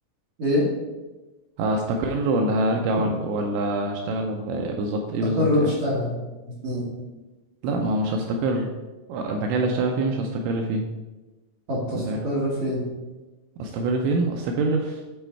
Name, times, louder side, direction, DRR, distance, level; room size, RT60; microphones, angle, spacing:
voice 1, 1.6-5.7 7.6-8.7 9.1-10.9 11.9-12.2 13.6-15.0, right 2 dB, 85° right, 2 dB, 2.7 m, -25 dB
voice 2, 5.2-6.1 6.5-6.9 11.7-12.8, left 1 dB, 60° right, -6 dB, 1.8 m, -24 dB
9.0 x 4.4 x 4.5 m, 1.1 s
omnidirectional pair, 6.0 m